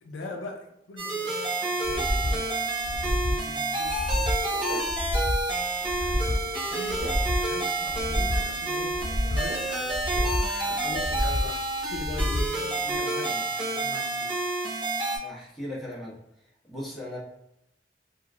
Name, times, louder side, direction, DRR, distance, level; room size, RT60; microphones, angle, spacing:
voice 1, 0.0-4.9 5.9-6.4 6.7-13.5 13.7-14.5, left 2 dB, 85° left, 2 dB, 0.5 m, -42 dB
sound 1, 1.0-15.2, right 2 dB, 30° right, 0.8 m, -29 dB
sound 2, 1.8-2.4 2.8-3.4 3.8-4.4 4.8-5.4 5.8-6.4 6.9-7.4 7.9-8.5 8.9-9.5 9.9-10.5 10.9-11.5 11.9-12.5 12.9-13.0, left 1 dB, 45° left, 0.9 m, -28 dB
sound 3, 4.1-12.5, right 2 dB, 50° right, 1.3 m, -46 dB
voice 2, 15.2-16.1 16.7-17.2, left 1 dB, ahead, -9 dB, 1.2 m, -38 dB
2.9 x 2.5 x 2.4 m, 0.83 s
head